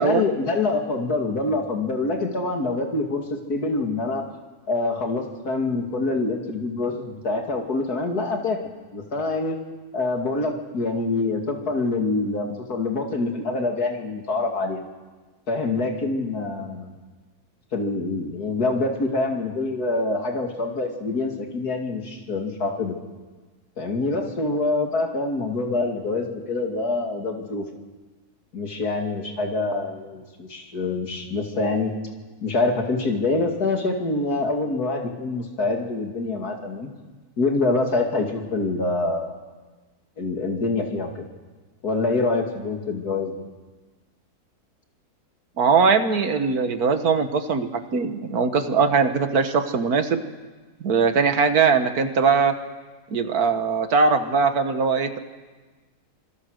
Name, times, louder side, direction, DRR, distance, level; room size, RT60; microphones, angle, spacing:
voice 1, 0.0-4.2 4.7-8.6 8.9-9.6 9.9-14.9 15.5-16.9 17.7-23.0 23.8-27.7 28.5-31.9 32.4-36.9 37.4-39.4 40.2-41.2 41.8-43.4, left 3 dB, 75° left, 2 dB, 3.0 m, -25 dB
voice 2, 45.6-50.3 50.8-52.6 53.1-55.2, right 5 dB, 70° right, 8 dB, 1.9 m, -21 dB
25.5 x 20.0 x 6.5 m, 1.3 s
omnidirectional pair, 1.7 m